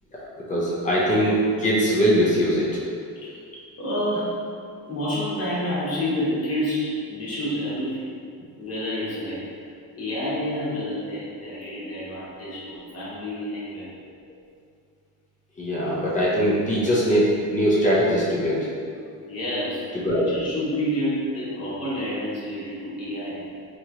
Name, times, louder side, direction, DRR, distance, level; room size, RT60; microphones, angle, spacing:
voice 1, 0.5-2.8 15.6-18.7 20.0-20.2, equal, 20° left, -7 dB, 0.5 m, -21 dB
voice 2, 3.8-4.3 4.8-8.1 8.6-9.7 10.0-13.9 19.1-23.4, equal, 40° left, -8 dB, 1.0 m, -29 dB
2.9 x 2.3 x 2.8 m, 2.3 s
cardioid pair, 140°, 37 cm